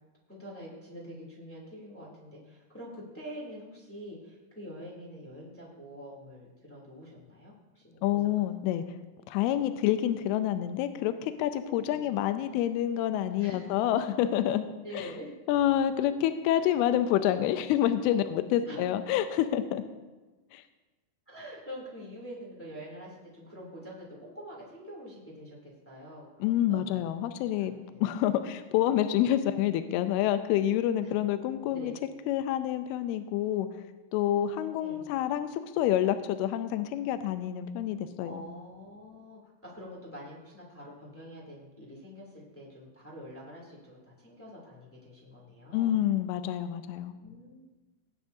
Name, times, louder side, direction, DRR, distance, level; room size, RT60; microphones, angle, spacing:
voice 1, 0.3-8.4 11.6-12.1 13.4-13.9 14.8-15.3 16.5-16.7 18.7-18.9 21.3-26.3 26.7-27.1 27.6-28.0 31.0-31.3 31.7-31.9 34.8-35.1 38.2-46.0 47.2-47.7, equal, 5° left, -4 dB, 2.0 m, -46 dB
voice 2, 8.0-9.0 9.3-14.6 14.9-15.1 15.5-19.8 20.5-20.6 26.4-27.7 28.0-31.9 32.3-33.7 34.1-38.4 45.7-47.1, left 11 dB, 85° left, 10 dB, 2.5 m, -28 dB
19.0 x 9.7 x 2.7 m, 1.2 s
omnidirectional pair, 4.7 m